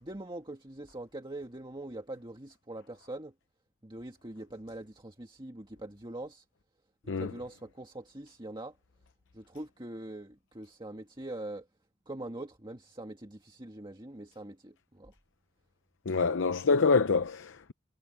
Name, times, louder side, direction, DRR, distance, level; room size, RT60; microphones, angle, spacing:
voice 1, 0.0-3.3 3.8-6.4 7.0-8.8 9.3-11.7 12.1-15.1, right 1 dB, 20° right, 1.7 m, -43 dB
voice 2, 16.1-17.7, left 4 dB, 60° left, 0.7 m, -26 dB
head